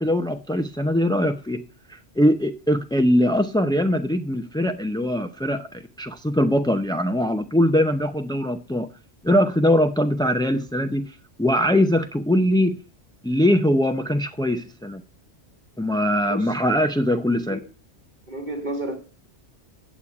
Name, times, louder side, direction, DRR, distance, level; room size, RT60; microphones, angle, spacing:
voice 1, 0.0-1.6 1.9-8.9 9.2-12.8 13.2-15.0 15.8-17.6, equal, 5° left, 0.3 m, -22 dB
voice 2, 18.3-19.0, right 1 dB, 40° right, 1.9 m, -31 dB
9.3 x 8.5 x 4.7 m
omnidirectional pair, 1.2 m